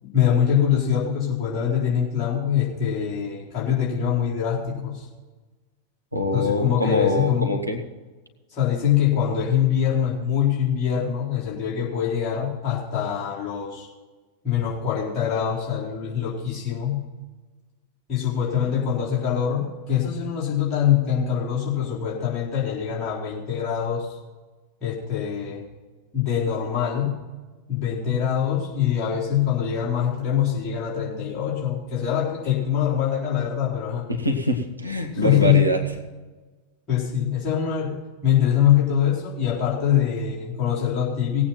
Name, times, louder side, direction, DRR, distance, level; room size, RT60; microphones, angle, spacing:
voice 1, 0.0-5.1 6.3-7.6 8.5-13.9 14.4-17.0 18.1-24.2 24.8-25.6 26.1-27.1 27.7-34.0 35.1-35.6 36.9-41.4, left 9 dB, 25° left, -7 dB, 4.1 m, -23 dB
voice 2, 6.1-7.8 34.1-35.8, left 1 dB, 90° right, 3 dB, 1.5 m, -24 dB
18.5 x 8.6 x 4.2 m, 1.3 s
figure-of-eight pair, 90°, 0 cm